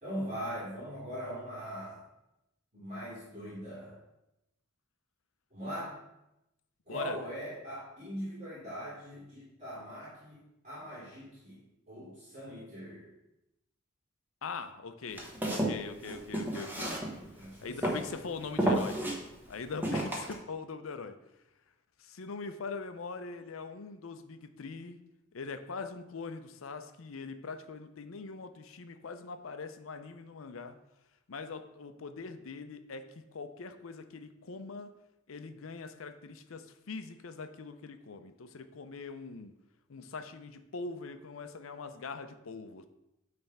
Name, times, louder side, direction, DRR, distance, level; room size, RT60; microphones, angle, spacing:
voice 1, 0.0-2.0 2.7-4.0 5.5-5.9 6.9-10.4 10.6-11.6 11.9-13.1 17.4-17.8, equal, 35° right, -8 dB, 2.6 m, -41 dB
voice 2, 6.9-7.2 14.4-17.0 17.6-19.0 19.5-21.2 22.0-25.0 25.3-30.8 31.3-34.9 35.3-39.5 39.9-42.9, left 4 dB, 85° left, 9 dB, 0.6 m, -42 dB
Walk footsteps, 15.1-17.4 17.8-18.2 18.6-19.2 19.8-20.3, right 1 dB, 10° right, 1.2 m, -31 dB
9.0 x 3.4 x 5.4 m, 0.90 s
head